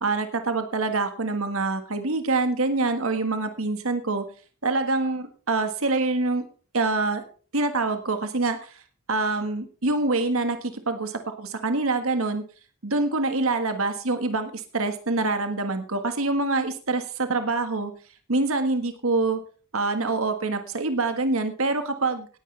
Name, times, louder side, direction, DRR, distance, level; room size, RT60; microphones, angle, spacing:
voice 1, 0.0-4.2 4.6-6.4 6.7-7.2 7.5-8.8 9.1-12.4 12.8-17.9 18.3-19.4 19.7-22.3, right 3 dB, 75° right, 8 dB, 1.6 m, -25 dB
17.5 x 10.0 x 3.3 m, 0.38 s
head